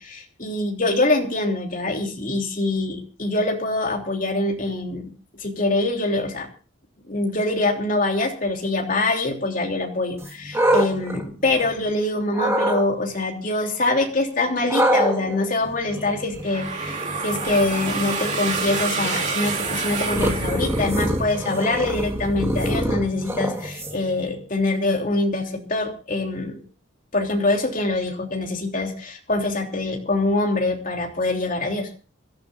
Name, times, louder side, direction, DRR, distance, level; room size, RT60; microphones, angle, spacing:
voice 1, 0.0-5.1 5.4-6.5 7.1-26.6 27.1-31.9, left 2 dB, 40° left, 1 dB, 3.3 m, -24 dB
sound 1, 10.2-11.9 12.3-12.8 14.7-24.2, right 1 dB, 15° right, 1.8 m, -26 dB
sound 2, 16.5-21.4, right 4 dB, 35° right, 2.7 m, -28 dB
26.0 x 13.5 x 2.6 m, 0.36 s
head